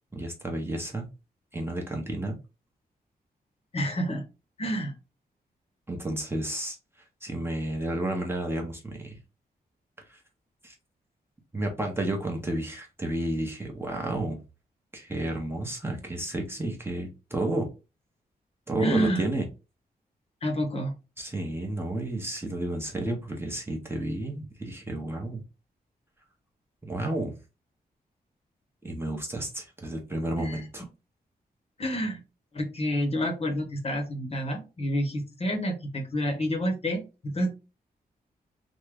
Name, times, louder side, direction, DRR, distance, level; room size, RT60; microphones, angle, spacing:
voice 1, 0.1-1.1 1.5-2.4 5.9-6.8 7.2-9.1 10.1-10.2 10.6-10.7 11.5-14.4 14.9-17.7 18.7-19.5 21.2-25.4 26.8-27.3 28.8-30.8, right 1 dB, 15° right, 0.7 m, -31 dB
voice 2, 3.7-4.2 4.6-4.9 18.8-19.2 20.4-20.9 30.4-30.6 31.8-32.2 32.5-37.5, equal, 40° left, 0.9 m, -29 dB
3.5 x 2.1 x 3.3 m
wide cardioid pair, 160°, 16 cm